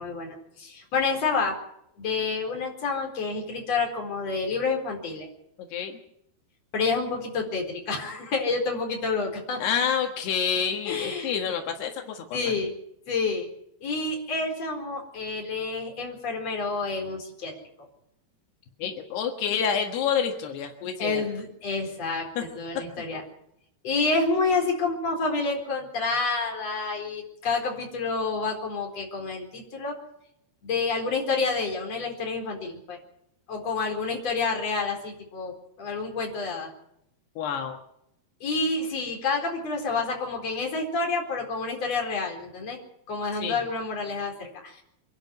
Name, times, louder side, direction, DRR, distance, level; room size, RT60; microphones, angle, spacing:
voice 1, 0.0-1.6 2.0-5.3 6.7-9.6 10.9-11.3 12.3-12.7 13.1-13.5 13.8-17.5 21.0-23.2 23.8-30.0 30.6-33.0 33.5-36.7 38.4-42.8 43.1-44.8, left 4 dB, 40° left, 1 dB, 5.2 m, -28 dB
voice 2, 9.6-12.2 18.8-21.2 22.4-22.5 23.1-23.2 37.4-37.8 43.4-43.6, left 7 dB, 80° left, 3 dB, 3.8 m, -28 dB
26.0 x 11.5 x 9.5 m, 0.76 s
omnidirectional pair, 4.6 m